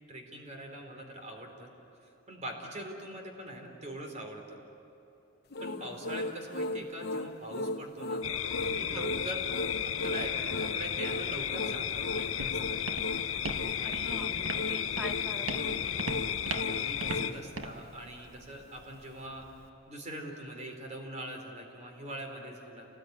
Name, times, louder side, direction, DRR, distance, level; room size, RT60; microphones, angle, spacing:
voice 1, 0.1-1.7 2.0-4.6 5.6-9.5 9.8-12.8 13.8-14.3 16.5-19.4 19.9-22.9, right 1 dB, 35° right, 2 dB, 4.0 m, -43 dB
sound 1, 5.5-17.4, left 1 dB, 55° left, 0.9 m, -37 dB
voice 2, 5.7-6.1 8.9-9.1 14.1-16.2, left 1 dB, 5° right, 1 dB, 2.1 m, -45 dB
sound 2, 8.2-17.3, left 9 dB, 85° left, 0.8 m, -34 dB
Walk footsteps, 11.7-19.7, right 2 dB, 80° right, 1.7 m, -41 dB
29.0 x 19.5 x 9.6 m, 3.0 s
head